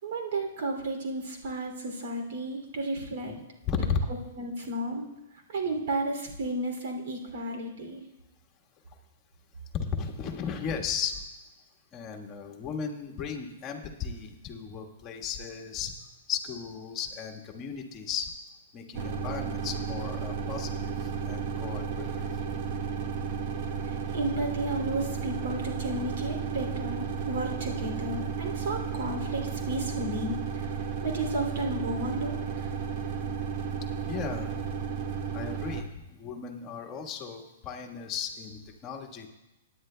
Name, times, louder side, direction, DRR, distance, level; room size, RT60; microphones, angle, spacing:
voice 1, 0.0-3.4 4.4-5.1 5.5-8.0 23.8-32.7, right 1 dB, 65° right, 3 dB, 2.7 m, -33 dB
voice 2, 3.6-4.1 9.7-11.3 11.9-15.9 16.3-18.3 18.7-22.1 27.8-27.9 33.2-33.3 34.1-34.6 35.3-39.3, left 6 dB, 25° left, 2 dB, 1.4 m, -35 dB
sound 1, 18.9-35.8, right 6 dB, 45° right, 1.0 m, -33 dB
18.0 x 9.8 x 2.2 m, 0.99 s
hypercardioid pair, 145°, 0 cm